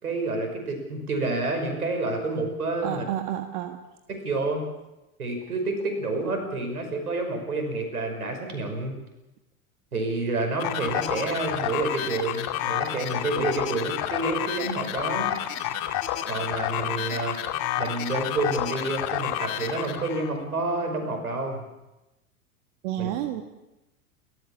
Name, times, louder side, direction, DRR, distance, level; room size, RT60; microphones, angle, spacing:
voice 1, 0.0-3.1 4.1-4.7 5.2-8.9 9.9-15.3 16.3-17.4 17.8-21.6 23.0-23.1, right 2 dB, 80° right, 5 dB, 5.8 m, -29 dB
voice 2, 2.8-3.8 22.8-23.4, right 12 dB, 50° right, 6 dB, 1.7 m, -30 dB
sound 1, 10.6-20.3, left 12 dB, 45° left, 2.4 m, -30 dB
29.5 x 14.0 x 7.3 m, 0.99 s
figure-of-eight pair, 90°, 44 cm